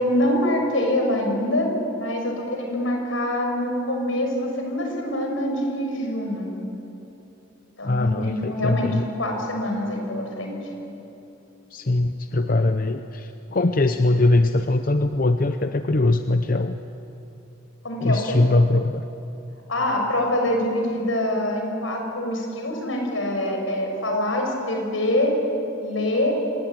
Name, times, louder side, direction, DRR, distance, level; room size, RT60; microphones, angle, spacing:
voice 1, 0.0-6.5 7.8-10.6 17.8-18.4 19.7-25.3 25.8-26.3, left 1 dB, 80° left, 2 dB, 6.0 m, -25 dB
voice 2, 7.8-9.1 11.7-16.8 18.0-19.0, left 2 dB, 45° left, 8 dB, 0.7 m, -21 dB
26.5 x 20.5 x 9.1 m, 2.9 s
head